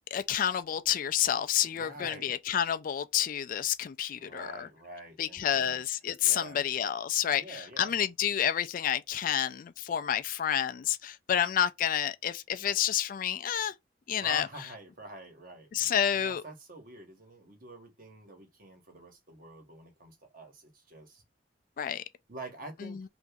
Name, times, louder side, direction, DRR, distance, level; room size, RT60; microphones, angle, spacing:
voice 1, 0.1-4.7 5.2-13.7 14.1-14.5 15.7-16.4 21.8-22.0 22.8-23.0, left 10 dB, 45° left, 0.3 m, -29 dB
voice 2, 1.6-2.3 4.1-5.8 6.2-6.7 7.3-7.9 14.1-15.7 16.1-21.2 22.3-23.0, right 2 dB, 50° right, 1.3 m, -46 dB
2.9 x 2.6 x 3.5 m
head